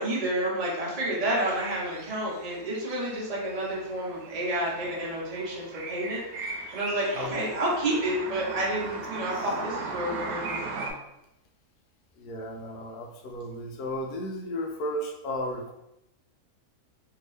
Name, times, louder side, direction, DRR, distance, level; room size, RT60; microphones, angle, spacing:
voice 1, 0.0-10.6, right 1 dB, 30° right, -4 dB, 0.8 m, -30 dB
sound 1, 1.2-10.9, right 3 dB, 90° right, 1.1 m, -38 dB
voice 2, 12.2-15.7, equal, 80° left, 1 dB, 1.1 m, -34 dB
2.9 x 2.8 x 3.2 m, 0.86 s
omnidirectional pair, 1.6 m